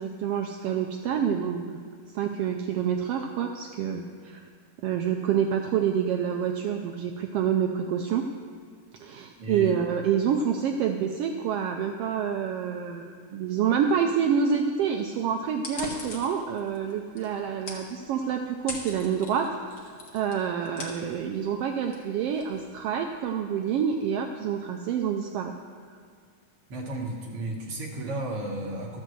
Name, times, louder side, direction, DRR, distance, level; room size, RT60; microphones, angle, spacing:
voice 1, 0.0-1.8 2.1-4.4 4.8-8.3 9.0-25.5, right 7 dB, 90° right, 4 dB, 1.3 m, -27 dB
voice 2, 9.4-9.8 26.7-29.0, right 2 dB, 60° right, -1 dB, 1.8 m, -33 dB
sound 1, 15.5-23.3, left 3 dB, 50° left, 2.1 m, -43 dB
13.5 x 5.4 x 7.6 m, 2.1 s
omnidirectional pair, 3.3 m